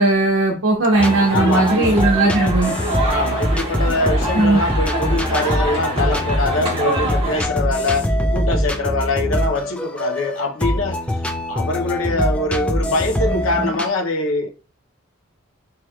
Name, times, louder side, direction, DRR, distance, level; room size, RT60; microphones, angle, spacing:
voice 1, 0.0-2.7 4.3-4.6, right 2 dB, 90° right, 0.9 m, -17 dB
sound 1, 0.9-7.4, right 1 dB, 25° right, 1.8 m, -26 dB
sound 2, 1.0-13.9, equal, 5° left, 0.3 m, -23 dB
voice 2, 1.3-2.4 3.1-11.0 11.5-14.5, left 2 dB, 75° left, 0.7 m, -23 dB
4.5 x 2.9 x 2.3 m
head